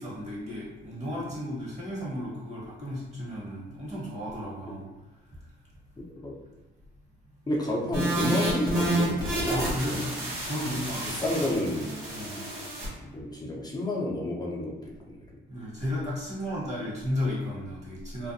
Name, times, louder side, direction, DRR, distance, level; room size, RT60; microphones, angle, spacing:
voice 1, 0.0-4.8 5.3-5.4 9.5-11.1 12.1-12.5 15.5-18.3, left 1 dB, 35° right, -7 dB, 1.2 m, -34 dB
voice 2, 7.5-10.2 10.7-11.9 13.0-15.2, left 1 dB, 20° left, -4 dB, 0.6 m, -30 dB
sound 1, 7.9-12.9, right 1 dB, 80° right, 1.0 m, -30 dB
2.4 x 2.1 x 2.6 m, 1.1 s
cardioid pair, 90°, 20 cm